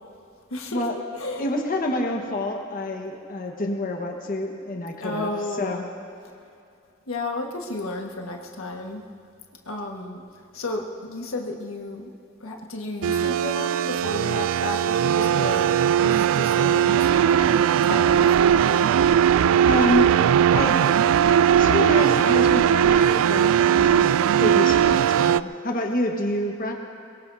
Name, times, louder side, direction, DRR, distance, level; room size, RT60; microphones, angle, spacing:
voice 1, 0.5-1.4 5.0-5.9 7.1-9.0 9.6-10.2 10.5-12.1 12.4-15.7 16.0-18.6, left 2 dB, 85° left, 1 dB, 1.6 m, -33 dB
voice 2, 1.4-5.3 5.6-5.9 19.6-20.1 20.5-20.8 21.5-26.7, left 1 dB, 45° left, 1 dB, 1.4 m, -27 dB
sound 1, 13.0-25.4, right 9 dB, 85° right, 0.3 m, -19 dB
23.0 x 22.5 x 2.7 m, 2.5 s
head